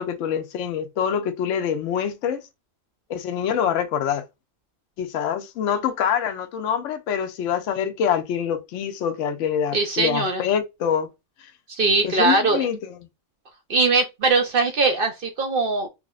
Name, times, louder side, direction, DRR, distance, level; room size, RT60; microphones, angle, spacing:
voice 1, 0.0-2.4 3.1-4.2 5.0-11.1 12.0-13.0, left 8 dB, 70° left, 0.9 m, -25 dB
voice 2, 9.7-10.4 11.8-12.7 13.7-15.9, right 3 dB, 55° right, 0.7 m, -21 dB
4.6 x 2.0 x 2.4 m
omnidirectional pair, 1.4 m